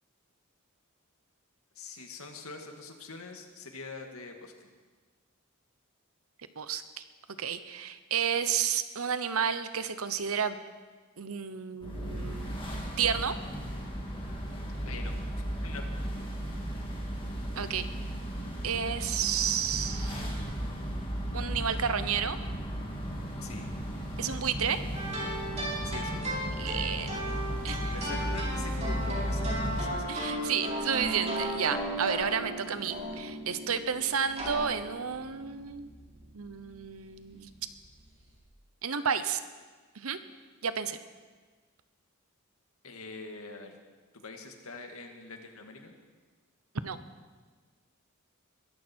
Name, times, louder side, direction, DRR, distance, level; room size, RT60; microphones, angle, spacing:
voice 1, 1.8-4.7 14.8-15.9 23.4-23.7 25.8-26.5 27.9-30.5 42.8-43.8 44.1-45.9, left 3 dB, 80° left, 4 dB, 2.0 m, -44 dB
voice 2, 6.6-7.0 7.4-10.6 11.2-12.6 13.0-13.3 17.6-17.9 18.6-20.3 21.3-22.4 24.2-24.8 26.6-27.2 27.6-28.0 30.1-35.9 36.3-37.5 38.8-39.4 39.9-40.2 40.6-41.0 46.8-47.0, right 7 dB, 80° right, 12 dB, 1.0 m, -31 dB
sound 1, 11.8-29.8, equal, 25° left, 2.7 m, -35 dB
sound 2, 24.9-38.4, right 1 dB, 30° right, 4.8 m, -37 dB
22.0 x 14.0 x 4.5 m, 1.4 s
head